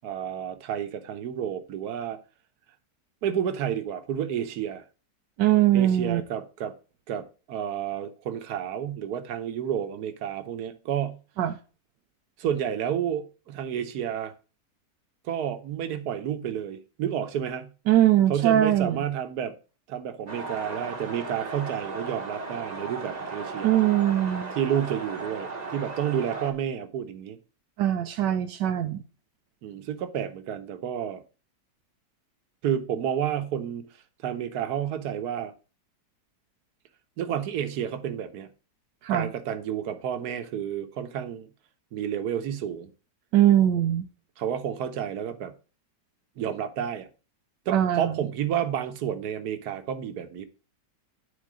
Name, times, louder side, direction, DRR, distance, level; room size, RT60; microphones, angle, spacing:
voice 1, 0.0-2.2 3.2-4.8 5.7-6.7 7.1-11.2 12.4-14.3 15.2-17.7 18.3-19.5 19.9-23.7 24.6-27.4 29.6-31.2 32.6-33.9 34.2-35.5 37.2-38.5 39.1-41.5 41.9-42.9 44.4-45.5 46.4-47.1 47.7-50.4, right 9 dB, 65° right, 1.4 m, -30 dB
voice 2, 5.4-6.2 11.4-11.6 17.9-19.0 23.6-24.5 27.8-29.0 39.0-39.3 43.3-44.0 47.7-48.1, right 12 dB, 80° right, 1.3 m, -21 dB
sound 1, 20.3-26.5, right 3 dB, 30° right, 1.0 m, -36 dB
10.5 x 4.2 x 4.8 m
omnidirectional pair, 1.9 m